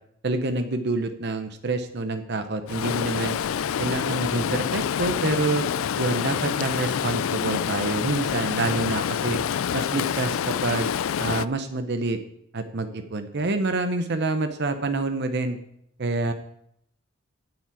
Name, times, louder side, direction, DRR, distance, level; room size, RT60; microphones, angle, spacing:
voice 1, 0.2-3.4 3.8-5.6 6.0-9.4 9.7-10.9 11.2-12.2 12.5-15.6 16.0-16.3, right 3 dB, 55° right, 8 dB, 0.8 m, -27 dB
Stream, 2.7-11.5, left 8 dB, 75° left, 0.4 m, -27 dB
9.3 x 7.5 x 8.4 m, 0.75 s
head